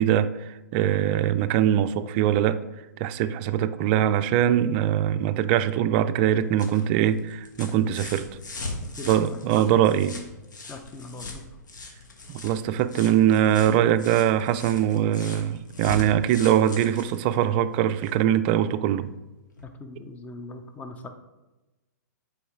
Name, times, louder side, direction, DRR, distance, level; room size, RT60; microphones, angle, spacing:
voice 1, 0.0-2.6 3.0-8.3 9.1-10.2 12.3-19.1, right 10 dB, 35° right, 0.4 m, -22 dB
sound 1, 6.2-18.2 19.6-19.7, left 2 dB, 80° left, 1.3 m, -40 dB
voice 2, 9.0-9.3 9.5-9.6 10.7-11.4 19.8-21.1, left 3 dB, 15° left, 0.6 m, -40 dB
6.8 x 4.6 x 3.7 m
hypercardioid pair, 125°, 10 cm